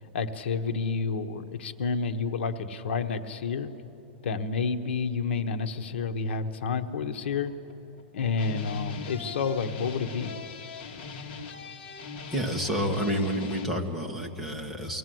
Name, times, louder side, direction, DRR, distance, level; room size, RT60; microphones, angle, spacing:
voice 1, 0.1-3.7 4.2-7.5 8.1-10.3, left 5 dB, 75° left, 7 dB, 1.2 m, -29 dB
sound 1, 7.5-8.0 8.3-13.7, left 4 dB, 50° left, 1.9 m, -40 dB
voice 2, 12.3-15.0, equal, ahead, -2 dB, 1.4 m, -29 dB
23.5 x 17.0 x 7.8 m, 2.9 s
supercardioid pair, 170°, 6 cm